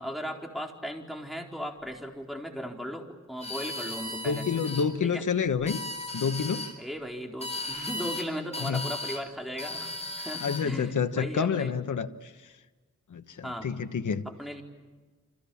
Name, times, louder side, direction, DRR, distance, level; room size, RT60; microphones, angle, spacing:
voice 1, 0.0-4.7 5.0-5.2 6.8-11.7 13.4-13.7 14.4-14.6, equal, ahead, 1 dB, 4.3 m, -37 dB
sound 1, 3.4-4.9 5.5-6.7 7.4-8.3 8.5-9.2 9.6-10.7, left 2 dB, 20° left, 4.7 m, -36 dB
voice 2, 4.2-5.8 6.1-6.6 8.6-8.9 10.4-12.5 13.1-14.2, left 6 dB, 85° left, 8 dB, 1.2 m, -29 dB
29.5 x 26.0 x 7.2 m, 1.4 s
wide cardioid pair, 90°, 30 cm